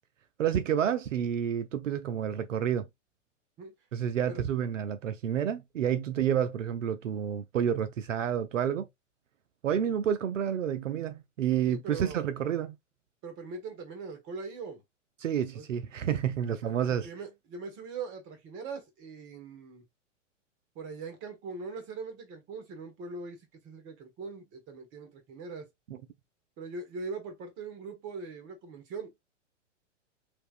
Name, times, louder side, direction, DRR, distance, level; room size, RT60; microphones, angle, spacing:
voice 1, 0.4-2.9 3.9-8.9 9.6-12.8 15.2-17.1, right 9 dB, 85° right, 0.5 m, -29 dB
voice 2, 11.7-12.2 13.2-14.8 15.5-15.7 16.6-19.8 20.7-25.6 26.6-29.1, right 4 dB, 30° right, 1.4 m, -41 dB
3.4 x 2.8 x 2.4 m
hypercardioid pair, 110°, 37 cm